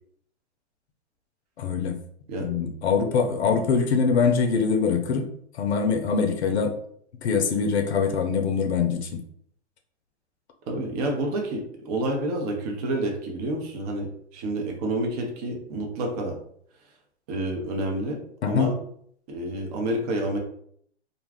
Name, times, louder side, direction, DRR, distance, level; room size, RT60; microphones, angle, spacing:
voice 1, 1.6-1.9 2.4-5.3 5.5-6.7 7.2-9.2 18.4-18.7, left 5 dB, 70° left, 4 dB, 0.6 m, -23 dB
voice 2, 10.7-16.4 17.3-18.2 18.5-18.7 19.3-20.4, right 1 dB, 35° right, 2 dB, 0.6 m, -29 dB
2.4 x 2.3 x 3.3 m, 0.66 s
hypercardioid pair, 135°, 35 cm